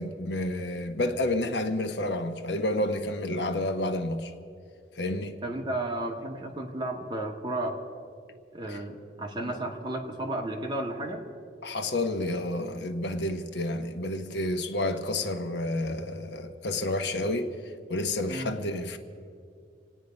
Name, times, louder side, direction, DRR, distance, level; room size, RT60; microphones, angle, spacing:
voice 1, 0.0-4.3 4.9-5.4 8.7-8.8 9.4-9.6 11.6-17.5 17.9-19.0, left 1 dB, 70° left, 1.1 m, -30 dB
voice 2, 5.4-7.8 8.5-11.2 18.3-18.6, right 1 dB, 25° right, 1.8 m, -33 dB
27.5 x 9.4 x 5.3 m
head